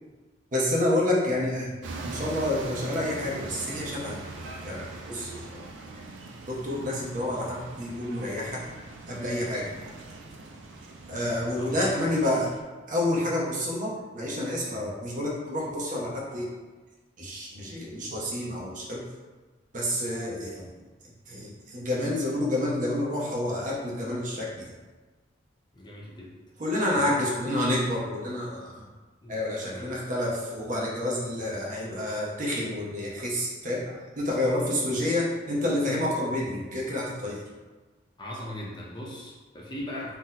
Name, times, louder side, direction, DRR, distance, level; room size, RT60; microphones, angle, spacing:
voice 1, 0.5-1.7 2.0-4.2 4.6-5.6 6.5-8.6 9.1-9.8 11.1-12.5 12.9-16.5 17.2-19.0 19.7-20.7 21.3-24.7 26.6-28.9 29.3-37.4, left 1 dB, 45° right, -4 dB, 0.7 m, -29 dB
sound 1, 1.8-12.6, right 2 dB, 85° right, 0.4 m, -41 dB
voice 2, 11.5-11.9 25.7-26.3 26.9-27.1 29.2-29.9 38.2-40.2, left 1 dB, 25° left, -4 dB, 0.5 m, -39 dB
2.8 x 2.0 x 3.8 m, 1.3 s
head